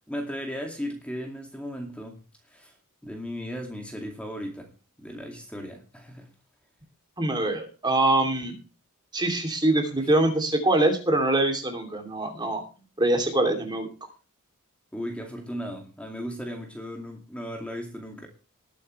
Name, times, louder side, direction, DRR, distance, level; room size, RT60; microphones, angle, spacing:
voice 1, 0.1-2.8 3.0-4.7 5.0-6.3 10.0-10.1 12.8-12.9 14.9-18.3, equal, 5° left, 3 dB, 2.3 m, -36 dB
voice 2, 7.2-8.6 9.1-12.6 13.0-13.9, right 2 dB, 20° right, 5 dB, 2.8 m, -24 dB
20.0 x 8.4 x 3.2 m, 0.34 s
head